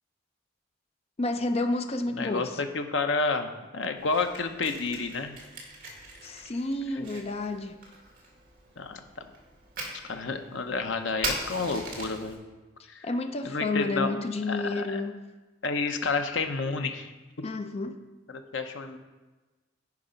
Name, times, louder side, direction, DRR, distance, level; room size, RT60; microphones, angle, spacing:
voice 1, 1.2-2.6 6.2-7.8 13.0-15.2 17.4-18.0, left 2 dB, 35° left, 7 dB, 0.5 m, -30 dB
voice 2, 2.1-5.4 8.8-9.3 10.0-12.4 12.9-13.1 13.4-14.1 14.5-15.0 15.6-17.1 18.3-19.0, left 4 dB, 80° left, 7 dB, 0.8 m, -30 dB
Fire, 4.0-12.4, right 2 dB, 50° right, 2.0 m, -41 dB
9.7 x 4.9 x 5.1 m, 1.2 s
head